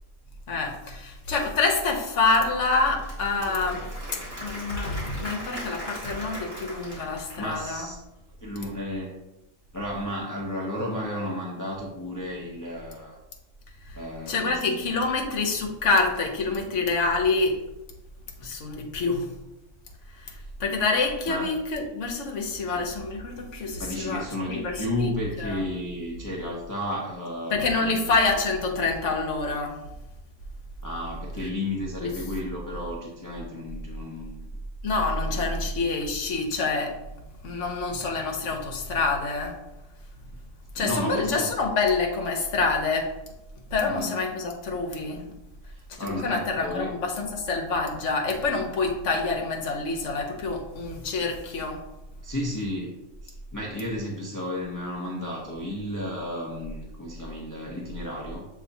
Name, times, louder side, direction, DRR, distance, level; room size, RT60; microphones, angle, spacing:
voice 1, 0.5-3.9 4.4-7.9 13.9-14.0 14.3-17.6 18.4-19.3 20.1-25.1 25.4-25.6 27.5-29.8 32.0-32.1 34.8-37.0 37.4-39.6 40.7-43.1 43.7-45.3 45.9-51.8, left 3 dB, 65° left, 1 dB, 1.1 m, -27 dB
Applause / Crowd, 2.6-7.9, equal, 25° right, 1.8 m, -40 dB
voice 2, 7.4-8.0 8.4-9.1 9.7-13.2 13.9-14.9 20.3-20.5 21.3-21.5 23.8-28.1 30.8-34.4 35.3-35.4 40.8-41.5 43.8-44.1 45.7-46.9 52.2-52.9 53.2-58.5, left 1 dB, 25° left, -4 dB, 0.4 m, -33 dB
6.9 x 2.8 x 2.6 m, 0.95 s
omnidirectional pair, 1.4 m